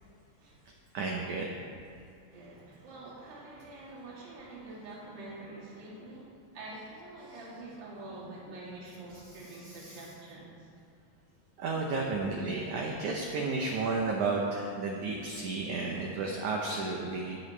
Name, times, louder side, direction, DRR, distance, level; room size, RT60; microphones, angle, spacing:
voice 1, 0.9-1.5 9.6-10.0 11.6-17.4, right 3 dB, 85° right, 0 dB, 1.7 m, -32 dB
voice 2, 2.3-10.7 15.5-15.7, right 2 dB, 60° right, -8 dB, 4.4 m, -46 dB
21.5 x 7.8 x 3.3 m, 2.4 s
omnidirectional pair, 4.7 m